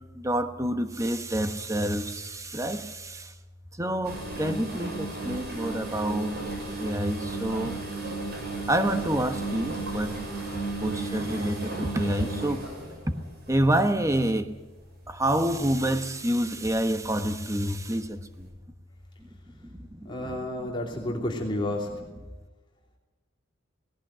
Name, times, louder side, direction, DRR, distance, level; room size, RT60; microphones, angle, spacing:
voice 1, 0.0-3.3 3.7-6.4 6.8-7.8 8.7-10.3 10.8-12.7 13.1-13.2 13.5-14.5 15.1-18.5 19.6-20.7, right 1 dB, 15° right, 8 dB, 1.3 m, -28 dB
sound 1, 4.0-14.2 14.9-15.2 15.6-15.8 16.6-17.1 17.4-17.5 18.4-18.5, right 2 dB, 55° right, 7.0 m, -35 dB
voice 2, 20.0-21.9, left 1 dB, 25° left, -1 dB, 3.0 m, -30 dB
19.0 x 17.5 x 9.0 m, 1.2 s
head